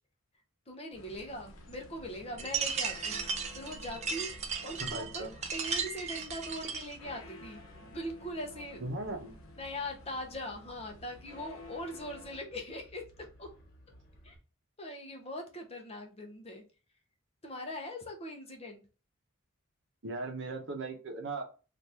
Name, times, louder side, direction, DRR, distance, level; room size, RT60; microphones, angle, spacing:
voice 1, 0.7-3.2 3.5-4.3 4.6-8.8 9.1-9.3 9.6-13.5 14.2-14.4 14.8-16.6 17.4-18.8, left 1 dB, 30° left, 3 dB, 0.7 m, -41 dB
sound 1, 0.9-12.4, left 2 dB, 80° left, 0.7 m, -52 dB
sound 2, 0.9-14.4, equal, 50° left, 0.9 m, -57 dB
sound 3, 2.4-7.0, right 6 dB, 30° right, 0.4 m, -36 dB
voice 2, 4.6-5.3 8.8-9.4 20.0-21.4, right 2 dB, 60° right, 4 dB, 0.8 m, -38 dB
2.9 x 2.5 x 3.4 m, 0.34 s
head